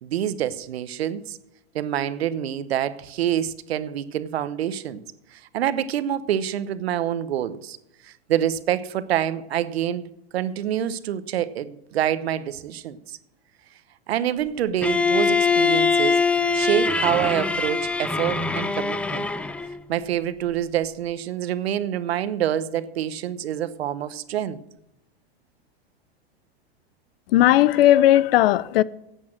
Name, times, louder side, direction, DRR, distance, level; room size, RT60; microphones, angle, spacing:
voice 1, 0.0-1.4 1.7-5.0 5.3-7.8 8.0-13.2 14.1-16.2 16.5-19.3 19.9-24.6, right 10 dB, 80° right, 0.9 m, -26 dB
Bowed string instrument, 14.8-19.7, left 4 dB, 5° left, 0.4 m, -22 dB
voice 2, 27.3-28.8, left 13 dB, 70° left, 0.6 m, -16 dB
11.0 x 8.4 x 7.5 m
hypercardioid pair, 115°, 31 cm